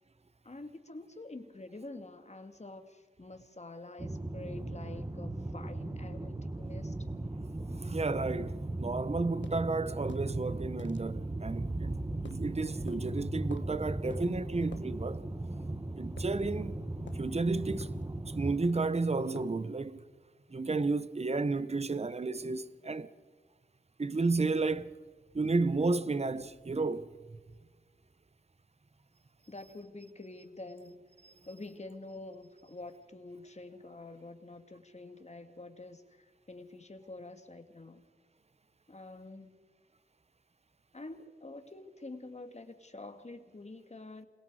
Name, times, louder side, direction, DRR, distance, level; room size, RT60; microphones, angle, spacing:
voice 1, 0.4-6.9 29.5-31.0 31.4-38.0 38.9-39.6 40.9-44.3, left 2 dB, 35° left, 2.4 m, -47 dB
sound 1, 4.0-18.6, right 2 dB, 20° right, 1.4 m, -37 dB
voice 2, 7.8-15.2 16.0-16.8 17.1-17.9 18.3-20.0 20.5-23.1 24.0-25.0 25.3-27.1, right 3 dB, 35° right, 1.0 m, -32 dB
sound 2, 9.4-9.6 10.1-10.3 10.8-11.0 12.3-12.5 12.9-13.0 13.5-13.7 14.1-14.3 14.7-14.9 16.2-16.7 17.1-17.3 17.8-18.0 18.6-18.9 19.4-19.6, left 5 dB, 80° left, 1.4 m, -50 dB
27.5 x 22.0 x 4.9 m
cardioid pair, 45°, 19 cm